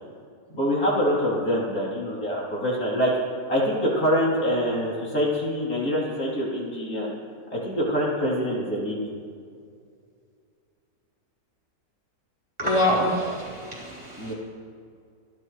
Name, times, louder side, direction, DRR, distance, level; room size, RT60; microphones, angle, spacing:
voice 1, 0.5-3.1 3.5-7.1 7.5-9.1 14.2-14.3, equal, 55° left, -5 dB, 3.8 m, -25 dB
voice 2, 12.6-14.3, left 1 dB, 20° right, -5 dB, 3.9 m, -25 dB
29.0 x 11.0 x 3.2 m, 2.3 s
omnidirectional pair, 1.8 m